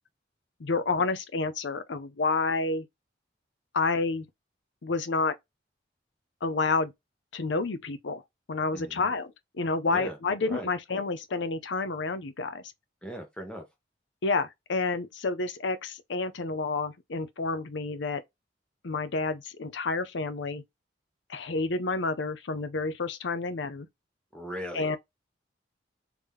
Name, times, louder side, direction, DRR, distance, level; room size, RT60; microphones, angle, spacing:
voice 1, 0.6-2.9 3.7-4.3 4.8-5.3 6.4-6.9 7.3-8.2 8.5-12.6 14.2-18.2 18.8-20.6 21.3-23.9 24.7-25.0, left 3 dB, 75° left, 0.6 m, -29 dB
voice 2, 8.7-9.1 9.9-10.2 10.5-10.7 13.0-13.6 24.3-25.0, equal, 5° left, 1.0 m, -38 dB
3.5 x 2.9 x 3.6 m
head